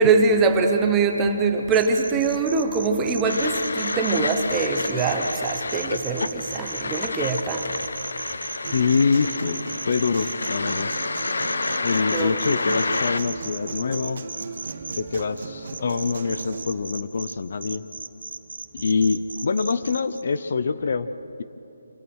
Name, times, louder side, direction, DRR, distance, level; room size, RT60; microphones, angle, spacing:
voice 1, 0.0-7.7 12.1-12.4, right 4 dB, 10° right, 4 dB, 0.9 m, -22 dB
sound 1, 1.7-15.0 15.7-17.3 17.6-20.2, right 4 dB, 65° right, 1.4 m, -36 dB
sound 2, 3.2-13.2, left 3 dB, 65° left, 1.1 m, -29 dB
Human voice / Acoustic guitar, 8.6-16.6, right 4 dB, 40° right, 1.8 m, -37 dB
voice 2, 8.7-10.9 11.8-14.2 15.0-17.8 18.7-21.1, left 5 dB, 40° left, 12 dB, 0.6 m, -25 dB
27.0 x 26.0 x 6.4 m, 3.0 s
hypercardioid pair, 180°, 0 cm